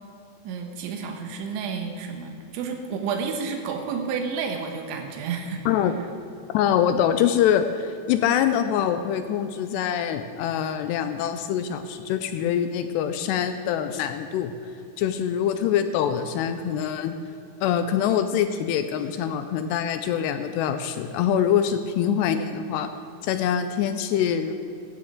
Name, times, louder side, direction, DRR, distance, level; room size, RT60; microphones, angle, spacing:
voice 1, 0.5-5.7, right 5 dB, 90° right, 3 dB, 3.5 m, -30 dB
voice 2, 6.5-14.5 15.0-17.2 17.6-22.9 23.2-24.5, left 9 dB, 80° left, 9 dB, 2.6 m, -24 dB
16.5 x 13.5 x 3.7 m, 2.6 s
omnidirectional pair, 5.2 m